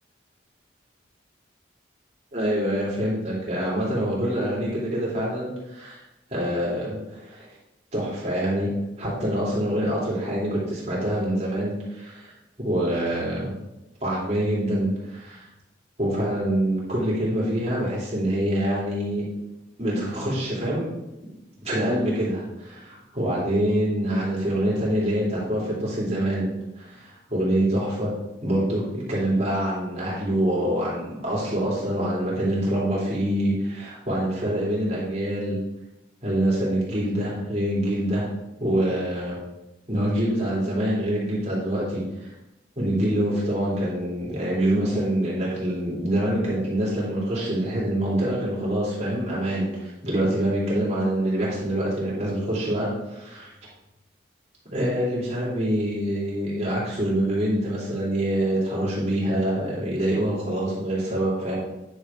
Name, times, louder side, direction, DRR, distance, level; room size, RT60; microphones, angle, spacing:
voice 1, 2.3-6.0 6.3-7.5 7.9-8.7 9.0-12.3 12.6-13.5 14.0-15.5 16.0-19.2 19.8-20.9 21.6-28.1 28.4-35.6 36.2-38.3 38.6-39.4 39.9-42.3 42.8-53.5 54.7-61.6, right 1 dB, 35° right, -6 dB, 2.8 m, -25 dB
9.5 x 6.5 x 3.7 m, 0.97 s
head